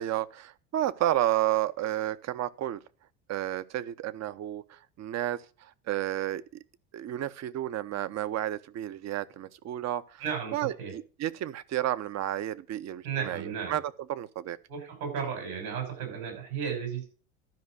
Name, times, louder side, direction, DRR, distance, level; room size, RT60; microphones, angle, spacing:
voice 1, 0.0-2.8 3.3-6.4 6.9-10.2 10.5-13.8 14.1-14.6, right 13 dB, 40° right, 0.8 m, -31 dB
voice 2, 10.2-10.9 13.0-13.8 14.7-17.1, right 7 dB, 80° right, 6.1 m, -34 dB
12.5 x 5.0 x 6.4 m
hypercardioid pair, 75°, 42 cm